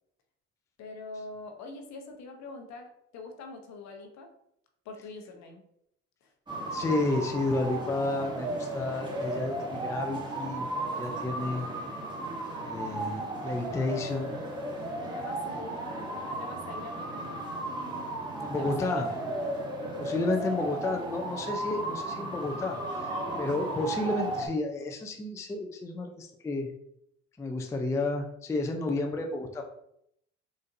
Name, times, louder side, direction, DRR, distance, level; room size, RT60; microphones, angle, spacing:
voice 1, 0.8-4.3 4.8-5.6 6.2-6.3 15.0-18.1 18.5-19.0 20.5-20.6, left 3 dB, 60° left, 4 dB, 0.8 m, -44 dB
sound 1, 6.5-24.5, right 1 dB, 15° right, 1.0 m, -35 dB
voice 2, 6.7-11.7 12.6-14.3 18.4-19.1 20.0-26.7 27.4-29.7, left 2 dB, 10° left, 3 dB, 0.4 m, -31 dB
4.0 x 2.4 x 2.5 m, 0.74 s
hypercardioid pair, 65°, 32 cm